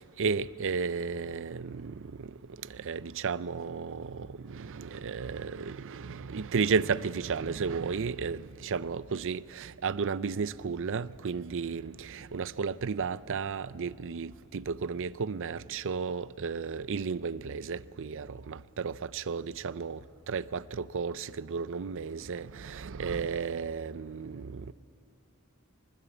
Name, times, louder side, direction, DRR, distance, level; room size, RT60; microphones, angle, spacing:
voice 1, 0.0-2.3 2.7-20.0 20.3-24.7, right 5 dB, 60° right, 0.5 m, -33 dB
23.5 x 20.0 x 8.4 m
head